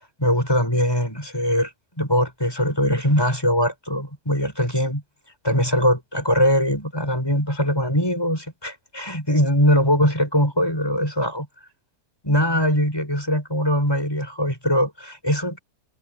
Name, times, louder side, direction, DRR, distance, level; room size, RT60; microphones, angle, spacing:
voice 1, 0.2-1.7 2.0-5.0 5.4-11.5 12.2-15.6, equal, 15° left, 7.0 m, -21 dB
omnidirectional pair, 1.7 m